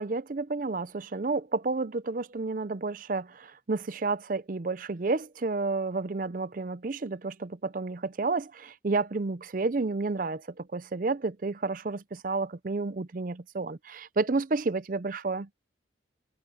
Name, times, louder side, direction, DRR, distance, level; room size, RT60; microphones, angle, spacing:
voice 1, 0.0-15.5, right 3 dB, 45° right, 0.5 m, -31 dB
head